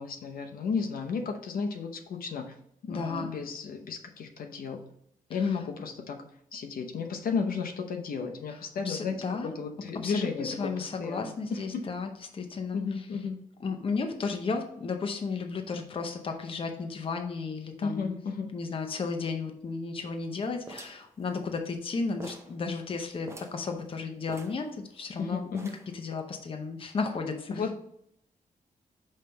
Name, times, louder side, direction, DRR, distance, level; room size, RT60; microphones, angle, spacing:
voice 1, 0.0-2.5 2.8-4.8 5.3-6.2 6.5-10.7 11.0-11.9 12.7-13.4 17.8-18.5 25.2-25.8 27.5-27.8, left 5 dB, 90° left, 4 dB, 0.8 m, -33 dB
voice 2, 2.9-3.4 5.4-5.5 8.5-8.6 8.8-9.5 10.0-12.8 13.6-18.2 18.5-25.5 25.9-27.6, left 4 dB, 40° left, 5 dB, 0.7 m, -34 dB
sound 1, 20.7-21.9 22.2-22.6 22.9-23.0 23.2-23.7 24.3-25.1 25.5-26.0, right 2 dB, 20° right, 0.6 m, -46 dB
5.3 x 3.3 x 5.5 m, 0.74 s
wide cardioid pair, 155°, 15 cm